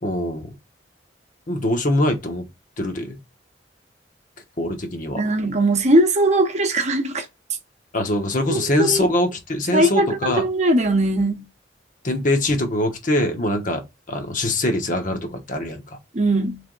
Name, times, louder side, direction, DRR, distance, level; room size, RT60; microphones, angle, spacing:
voice 1, 0.0-0.5 1.5-2.5 2.8-3.2 4.6-5.2 7.9-10.5 12.0-13.8 14.1-16.0, left 1 dB, 45° left, 0.9 m, -23 dB
voice 2, 5.2-7.3 8.5-9.1 9.7-11.4 16.1-16.6, right 1 dB, 40° right, 0.8 m, -20 dB
3.4 x 3.4 x 3.7 m
head